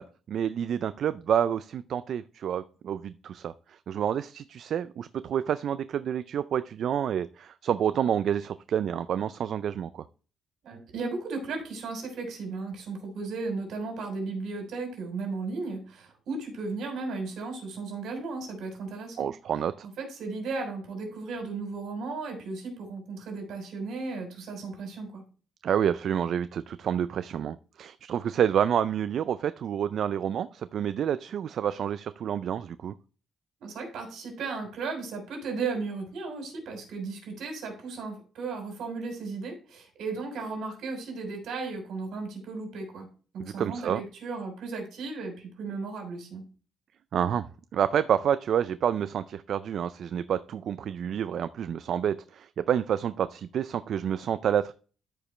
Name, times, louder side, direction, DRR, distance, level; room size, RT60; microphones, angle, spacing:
voice 1, 0.0-10.0 19.2-19.9 25.6-32.9 43.4-44.0 47.1-47.5 47.7-54.7, right 9 dB, 60° right, 14 dB, 0.3 m, -28 dB
voice 2, 10.6-19.3 19.8-25.2 33.6-43.1 43.3-46.4, right 4 dB, 75° right, 3 dB, 3.5 m, -35 dB
13.5 x 5.1 x 3.2 m, 0.39 s
cardioid pair, 145°, 0 cm